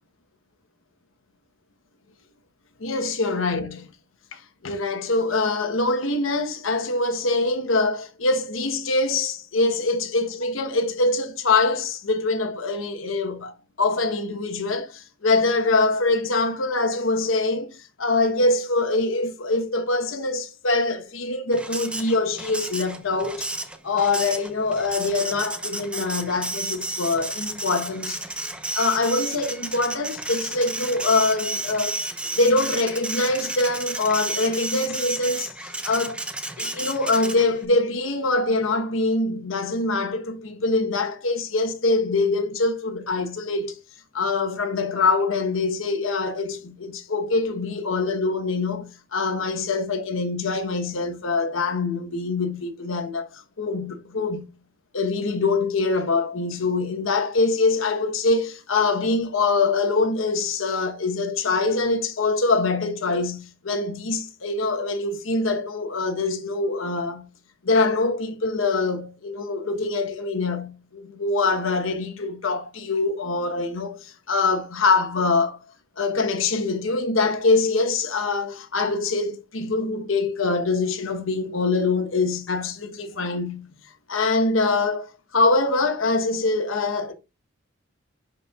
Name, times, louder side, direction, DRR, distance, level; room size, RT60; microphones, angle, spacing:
voice 1, 2.8-3.9 4.3-23.5 23.8-28.2 28.7-32.0 32.4-36.2 36.6-43.8 44.1-54.5 54.9-67.3 67.6-75.6 76.0-83.7 84.1-87.1, left 3 dB, 80° left, 1.0 m, -24 dB
Printer, 21.5-37.6, right 2 dB, 5° right, 0.5 m, -32 dB
10.5 x 4.2 x 2.3 m
head